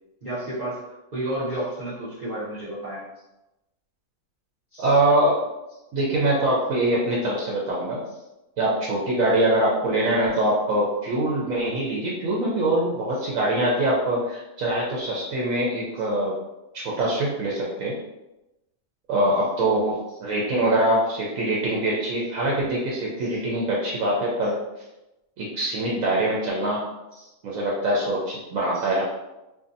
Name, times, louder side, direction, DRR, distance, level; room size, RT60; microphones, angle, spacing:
voice 1, 0.2-3.0 4.7-4.9 13.2-13.3 23.2-23.4 27.1-27.3 28.7-28.9, right 1 dB, 40° right, -10 dB, 0.6 m, -32 dB
voice 2, 4.8-5.4 5.9-8.0 8.6-16.3 16.7-17.9 19.1-24.5 25.4-26.8 27.4-29.0, right 1 dB, 75° right, -4 dB, 1.0 m, -23 dB
2.6 x 2.3 x 2.6 m, 0.96 s
omnidirectional pair, 1.5 m